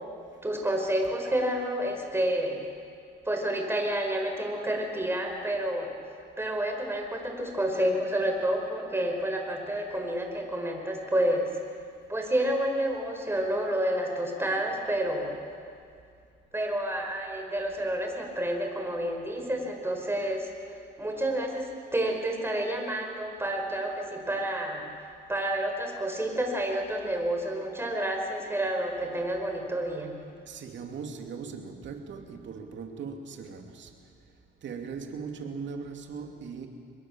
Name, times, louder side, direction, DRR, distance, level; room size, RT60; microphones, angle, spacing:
voice 1, 0.4-2.6 3.3-5.9 6.4-11.5 12.1-15.4 16.5-24.8 25.3-30.1, right 1 dB, 10° right, 2 dB, 5.2 m, -29 dB
voice 2, 30.5-33.9 34.6-36.7, right 5 dB, 70° right, 4 dB, 2.8 m, -39 dB
25.0 x 21.5 x 7.5 m, 2.3 s
cardioid pair, 90°, 20 cm